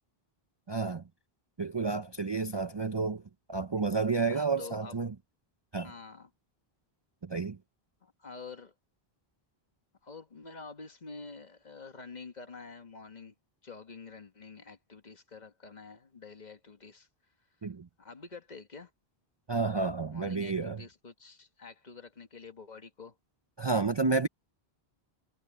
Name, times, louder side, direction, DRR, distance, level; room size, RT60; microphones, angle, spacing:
voice 1, 0.7-1.0 1.6-3.2 3.5-5.1 5.7-5.9 7.2-7.6 17.6-17.9 19.5-20.8 23.6-24.3, right 4 dB, 30° right, 0.5 m, -30 dB
voice 2, 4.3-4.9 5.8-6.3 8.0-8.7 10.0-13.3 13.6-17.1 18.0-18.9 20.1-23.1, left 4 dB, 45° left, 1.4 m, -47 dB
omnidirectional pair, 1.1 m